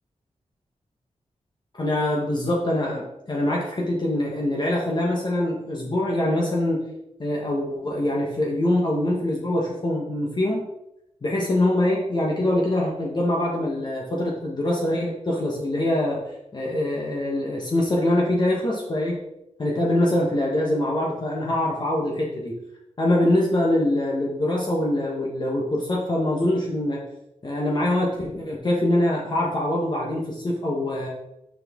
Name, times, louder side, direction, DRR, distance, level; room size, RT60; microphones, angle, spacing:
voice 1, 1.8-6.8 7.2-10.6 11.2-16.2 16.5-19.2 19.6-22.6 23.0-27.0 27.4-31.1, left 1 dB, 35° left, -3 dB, 1.3 m, -24 dB
6.6 x 6.3 x 3.7 m, 0.86 s
wide cardioid pair, 135°, 13 cm